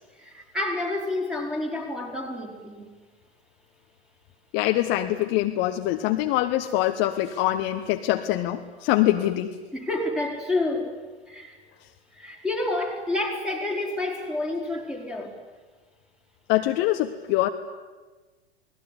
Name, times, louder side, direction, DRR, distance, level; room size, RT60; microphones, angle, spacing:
voice 1, 0.2-2.9 9.7-11.0 11.3-11.6 12.1-15.4, left 2 dB, ahead, 2 dB, 4.5 m, -29 dB
voice 2, 4.5-9.5 16.5-17.5, left 14 dB, 35° left, 6 dB, 1.2 m, -24 dB
28.5 x 20.0 x 9.9 m, 1.3 s
figure-of-eight pair, 100°, 34 cm